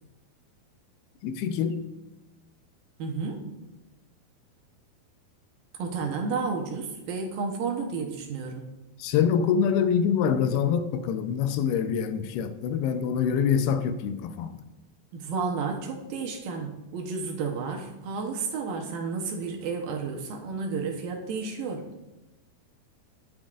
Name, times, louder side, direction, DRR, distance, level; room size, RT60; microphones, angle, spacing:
voice 1, 1.2-1.8 9.0-14.6, left 7 dB, 85° left, 2.7 m, -25 dB
voice 2, 3.0-3.4 5.8-8.7 15.1-21.8, right 4 dB, 70° right, 2.6 m, -32 dB
21.5 x 7.7 x 2.5 m
omnidirectional pair, 4.4 m